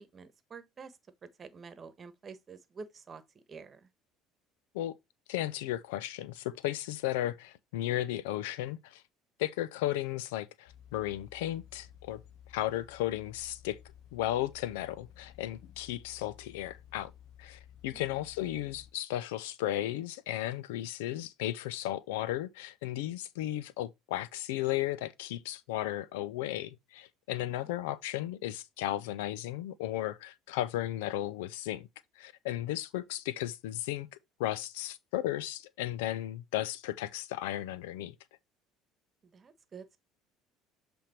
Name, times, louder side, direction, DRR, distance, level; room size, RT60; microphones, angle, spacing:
voice 1, 0.0-3.9 17.9-18.2 27.4-27.7 39.2-40.0, right 5 dB, 35° right, 1.2 m, -49 dB
voice 2, 5.3-9.0 9.4-12.2 12.5-13.8 14.1-17.1 17.4-31.9 32.2-34.1 34.4-38.1, left 14 dB, 85° left, 0.5 m, -35 dB
sound 1, 10.7-18.9, left 10 dB, 70° left, 1.1 m, -55 dB
7.5 x 3.5 x 4.3 m
supercardioid pair, 85°, 0 cm